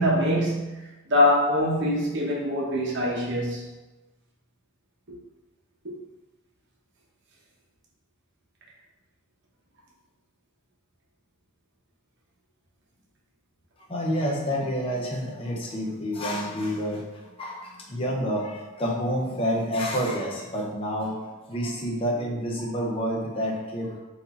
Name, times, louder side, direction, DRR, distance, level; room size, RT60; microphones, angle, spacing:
voice 1, 0.0-3.6 5.8-5.9, left 1 dB, 55° right, -4 dB, 0.9 m, -24 dB
voice 2, 13.9-24.0, equal, 25° left, -2 dB, 0.7 m, -29 dB
4.1 x 2.7 x 4.2 m, 1.1 s
head